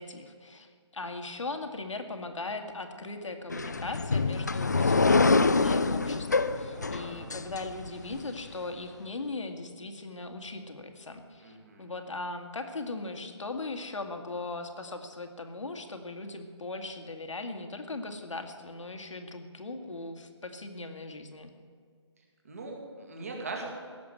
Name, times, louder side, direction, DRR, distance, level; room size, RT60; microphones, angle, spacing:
voice 1, 0.0-21.5, left 3 dB, 90° left, 6 dB, 2.0 m, -39 dB
sound 1, 3.5-8.2, left 3 dB, 35° left, 0.4 m, -26 dB
voice 2, 6.5-7.3 11.4-11.9 22.4-23.7, right 3 dB, 30° right, 1 dB, 2.2 m, -41 dB
16.5 x 7.1 x 9.0 m, 2.1 s
hypercardioid pair, 180°, 15 cm